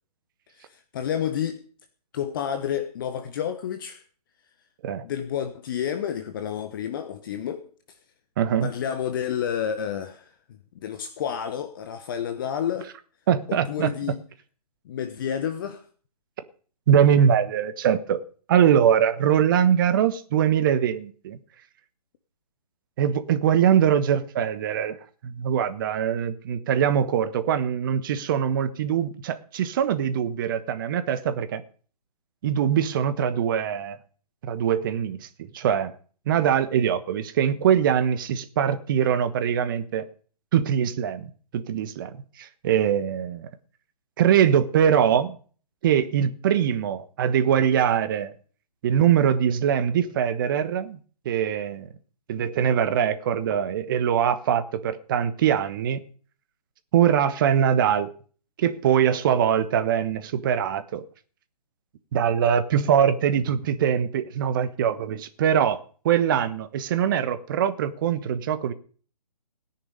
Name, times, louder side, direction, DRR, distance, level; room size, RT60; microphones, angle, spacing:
voice 1, 0.6-1.6 2.1-4.0 5.0-7.6 8.6-10.3 10.8-12.9 13.5-14.2 14.8-15.8, left 9 dB, 35° left, 1.1 m, -30 dB
voice 2, 8.4-8.7 13.3-13.9 16.9-18.2 18.5-21.4 23.0-25.0 25.2-31.6 32.4-34.0 34.4-35.3 35.5-35.9 36.3-40.0 40.5-43.5 44.2-45.4 45.8-48.3 48.8-51.0 51.2-51.9 52.3-56.0 56.9-58.1 58.6-61.0 62.1-65.8 66.0-68.7, right 9 dB, 30° right, 1.2 m, -22 dB
18.0 x 10.0 x 5.2 m
figure-of-eight pair, 135°, 20 cm